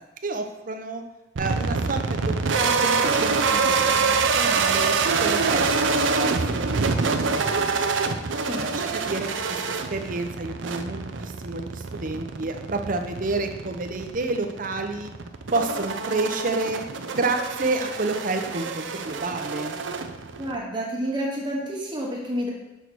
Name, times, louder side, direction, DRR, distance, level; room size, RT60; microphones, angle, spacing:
voice 1, 0.2-1.0 1.4-5.8 6.2-6.3 6.5-7.7 8.6-15.1 15.5-16.8 17.1-19.8, right 3 dB, 45° right, 6 dB, 0.8 m, -30 dB
sound 1, 1.4-20.6, right 4 dB, 85° right, 0.6 m, -26 dB
voice 2, 20.4-22.5, equal, 25° right, -3 dB, 1.1 m, -29 dB
6.9 x 6.1 x 4.6 m, 1.1 s
head